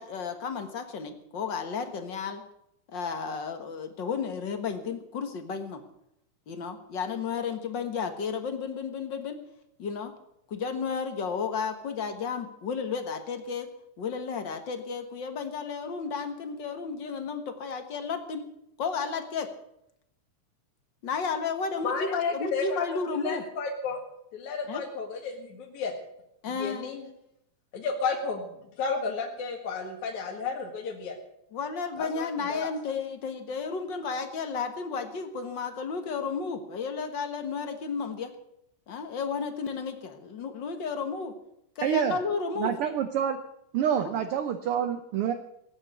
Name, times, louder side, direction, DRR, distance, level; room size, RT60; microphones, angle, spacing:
voice 1, 0.0-2.4 2.9-5.8 6.5-9.4 9.8-10.1 10.5-13.7 14.0-18.4 18.8-19.5 21.0-23.4 24.7-24.8 26.4-26.9 31.5-38.3 38.9-41.3 41.7-42.7 43.9-44.1, left 5 dB, 45° left, 7 dB, 1.7 m, -33 dB
voice 2, 21.8-22.9 23.2-24.0 24.3-25.9 26.5-27.0 27.7-28.5 28.8-31.1 32.0-32.7, left 4 dB, 70° left, 0 dB, 3.2 m, -32 dB
voice 3, 41.8-42.2 42.6-43.4 43.7-45.3, right 9 dB, 70° right, 8 dB, 1.4 m, -27 dB
18.0 x 8.9 x 8.2 m, 0.77 s
omnidirectional pair, 3.5 m